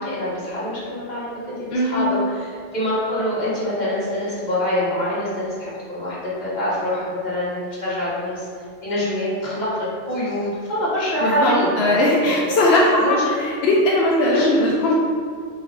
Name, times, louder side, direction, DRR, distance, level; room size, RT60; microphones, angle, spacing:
voice 1, 0.0-8.5 8.8-12.4 13.0-13.3 14.2-14.7, equal, 40° left, -10 dB, 1.7 m, -25 dB
voice 2, 1.7-2.1 11.2-13.1 13.4-14.9, left 1 dB, 65° left, -4 dB, 0.8 m, -19 dB
5.4 x 3.9 x 2.5 m, 2.2 s
omnidirectional pair, 1.2 m